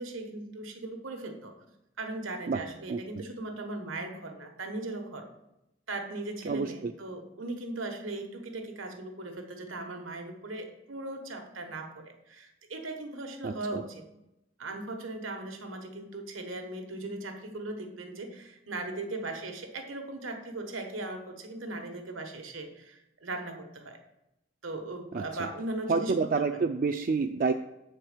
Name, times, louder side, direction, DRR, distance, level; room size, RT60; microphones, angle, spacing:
voice 1, 0.0-1.5 2.0-5.3 5.9-14.0 14.6-24.0 24.6-26.5, right 2 dB, 85° right, 4 dB, 1.1 m, -38 dB
voice 2, 2.9-3.2 6.4-6.9 13.4-13.8 25.1-25.5 25.9-27.5, right 4 dB, 45° right, 6 dB, 0.3 m, -29 dB
7.2 x 4.5 x 6.5 m, 0.90 s
head